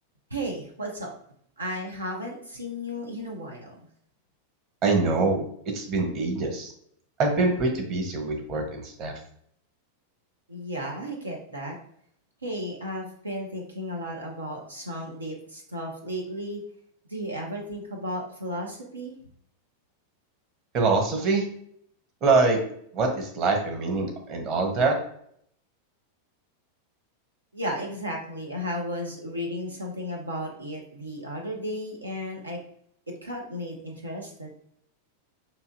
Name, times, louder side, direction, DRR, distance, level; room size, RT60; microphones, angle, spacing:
voice 1, 0.3-1.1 1.6-3.8 10.5-11.8 12.4-16.6 17.1-19.1 27.5-32.6 33.2-34.5, equal, 80° right, 0 dB, 0.6 m, -34 dB
voice 2, 4.8-5.5 5.7-6.7 7.2-9.2 20.7-21.4 22.2-22.6 22.9-25.0, right 3 dB, 35° right, 2 dB, 1.0 m, -24 dB
5.5 x 2.7 x 2.5 m, 0.66 s
figure-of-eight pair, 90°, 0 cm